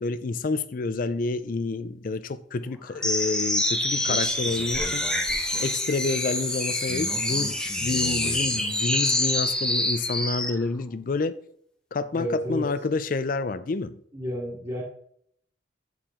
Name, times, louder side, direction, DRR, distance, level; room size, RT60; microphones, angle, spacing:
voice 1, 0.0-5.1 5.6-11.4 11.9-14.0, left 3 dB, 45° left, 0.4 m, -29 dB
sound 1, 3.0-10.6, left 1 dB, 5° left, 0.8 m, -26 dB
voice 2, 12.1-12.7 14.1-14.8, equal, 25° right, 1.6 m, -31 dB
8.8 x 4.7 x 3.7 m
head